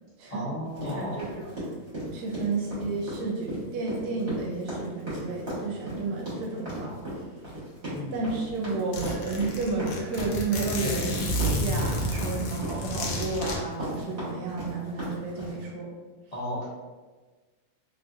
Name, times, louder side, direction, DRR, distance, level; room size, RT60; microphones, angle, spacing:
voice 1, 0.3-1.2 7.9-8.2 16.3-16.6, left 1 dB, 55° left, -10 dB, 0.4 m, -33 dB
sound 1, 0.8-15.6, right 1 dB, 45° right, 1.3 m, -36 dB
voice 2, 0.8-1.6 2.1-7.0 8.1-15.9, right 3 dB, 75° right, -1 dB, 1.1 m, -32 dB
Zipper (clothing), 8.1-8.2 8.5-8.6 8.9-13.6, left 1 dB, 85° left, 1.2 m, -30 dB
3.0 x 2.6 x 2.3 m, 1.3 s
omnidirectional pair, 1.7 m